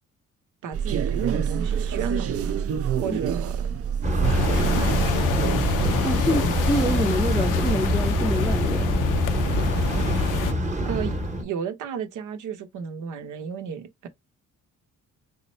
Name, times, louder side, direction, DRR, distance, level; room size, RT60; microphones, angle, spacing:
voice 1, 0.6-2.3 3.0-3.7 4.4-5.1 6.3-6.6 10.8-14.1, right 7 dB, 80° right, 0.9 m, -33 dB
sound 1, 0.7-7.0, right 8 dB, 50° right, 0.5 m, -27 dB
sound 2, 4.0-11.4, equal, 25° right, 1.0 m, -25 dB
sound 3, 4.2-10.5, left 9 dB, 90° left, 0.5 m, -28 dB
voice 2, 6.0-8.9, right 1 dB, ahead, 0.5 m, -26 dB
3.7 x 2.1 x 4.2 m
cardioid pair, 90°, 30 cm